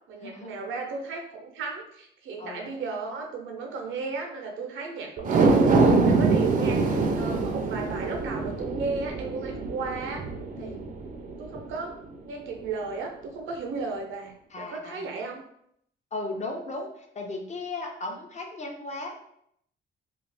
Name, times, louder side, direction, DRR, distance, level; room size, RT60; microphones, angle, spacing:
voice 1, 0.1-10.2 10.6-10.8 11.4-11.9 12.2-15.4, right 4 dB, 80° right, 1 dB, 0.7 m, -35 dB
sound 1, 5.2-11.7 12.1-12.2, right 3 dB, 45° right, 0.5 m, -24 dB
voice 2, 10.6-10.9 14.5-15.2 16.1-19.2, left 2 dB, 35° left, 2 dB, 0.7 m, -36 dB
2.4 x 2.4 x 3.3 m, 0.71 s
cardioid pair, 90°, 20 cm